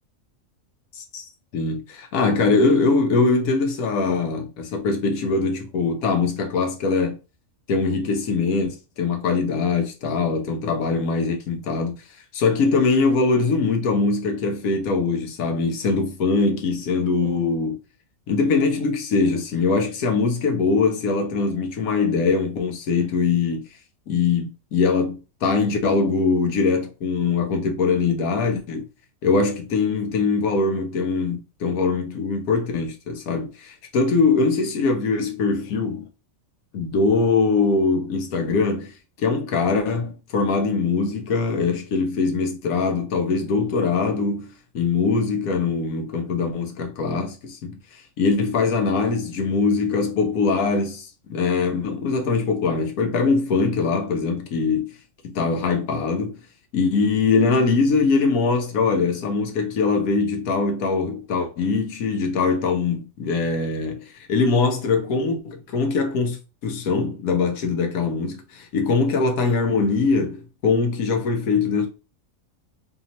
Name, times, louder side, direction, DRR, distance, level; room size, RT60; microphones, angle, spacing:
voice 1, 1.5-7.2 7.7-12.0 12.3-17.8 18.3-23.6 24.1-28.9 29.2-36.1 36.7-54.9 55.3-56.4 56.7-71.9, left 4 dB, 80° left, 1.2 m, -22 dB
4.3 x 2.8 x 2.9 m
omnidirectional pair, 1.5 m